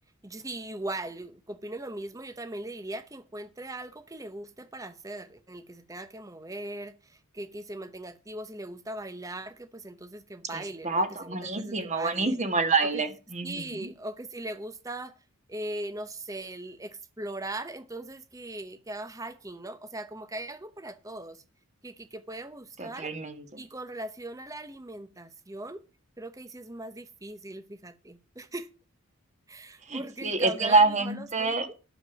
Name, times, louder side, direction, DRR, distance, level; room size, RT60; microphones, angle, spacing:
voice 1, 0.2-12.4 12.9-13.0 13.4-15.2 15.5-21.4 21.8-23.1 23.6-25.8 26.2-28.7 29.5-31.7, right 1 dB, 15° right, 0.8 m, -39 dB
voice 2, 10.5-13.9 22.8-23.6 29.9-31.7, right 3 dB, 30° right, 1.5 m, -27 dB
11.0 x 7.5 x 6.1 m
head